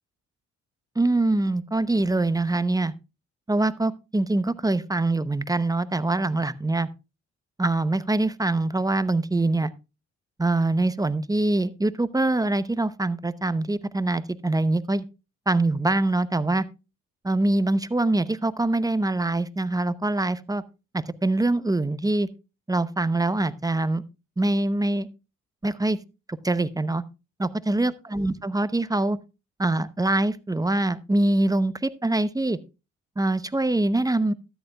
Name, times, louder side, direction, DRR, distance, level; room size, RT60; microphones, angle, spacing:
voice 1, 1.0-2.9 3.5-6.9 7.6-9.7 10.4-15.0 15.5-16.6 17.2-20.6 20.9-22.3 22.7-24.0 24.4-25.1 25.6-26.0 26.3-27.0 27.4-29.2 29.6-32.6 33.2-34.3, right 2 dB, 10° right, 15 dB, 0.7 m, -24 dB
13.0 x 10.5 x 2.3 m, 0.28 s
supercardioid pair, 55°, 32 cm